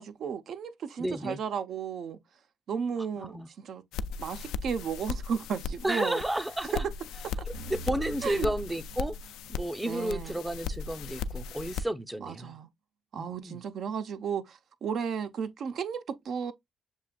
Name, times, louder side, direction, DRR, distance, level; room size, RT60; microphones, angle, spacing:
voice 1, 0.0-2.2 2.7-3.8 4.2-6.2 6.7-6.8 8.2-8.5 9.9-10.4 12.2-12.7 13.1-16.5, right 7 dB, 65° right, 0.5 m, -34 dB
voice 2, 1.0-1.4 3.2-3.5 5.8-6.8 7.7-9.1 9.5-12.6 13.1-13.6, right 1 dB, 10° right, 0.5 m, -32 dB
sound 1, 3.9-11.8, left 5 dB, 90° left, 0.3 m, -37 dB
sound 2, 7.5-10.5, right 4 dB, 85° right, 1.3 m, -46 dB
7.1 x 2.5 x 2.2 m
cardioid pair, 90°, 0 cm